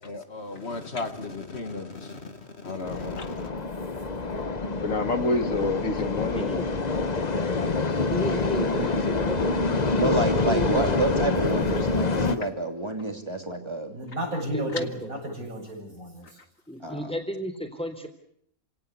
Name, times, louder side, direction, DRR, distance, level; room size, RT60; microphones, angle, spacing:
voice 1, 0.0-3.5, left 3 dB, 50° left, 8 dB, 1.9 m, -36 dB
sound 1, 2.8-12.4, left 3 dB, 30° left, 1.2 m, -26 dB
voice 2, 4.8-6.5, left 3 dB, 65° left, 8 dB, 2.2 m, -28 dB
voice 3, 6.2-6.7 8.1-9.5 10.0-11.1 14.5-15.2 16.7-18.1, equal, 5° left, 5 dB, 3.7 m, -33 dB
voice 4, 8.4-9.0 9.9-14.0 16.8-17.1, right 2 dB, 20° right, 5 dB, 3.0 m, -29 dB
voice 5, 13.9-16.3, right 1 dB, 80° right, 0 dB, 7.9 m, -33 dB
27.5 x 17.5 x 8.4 m, 0.71 s
omnidirectional pair, 1.5 m